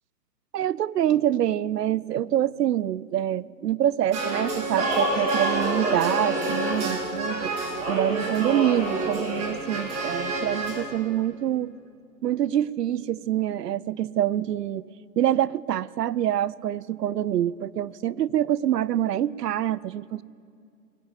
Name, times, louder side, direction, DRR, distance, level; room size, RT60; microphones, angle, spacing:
voice 1, 0.5-7.5 7.9-11.7 12.2-14.8 15.2-20.2, right 11 dB, 80° right, 21 dB, 0.6 m, -26 dB
sound 1, 4.1-10.8, right 2 dB, 15° right, 1.7 m, -27 dB
20.0 x 7.3 x 8.5 m, 2.4 s
hypercardioid pair, 155°, 48 cm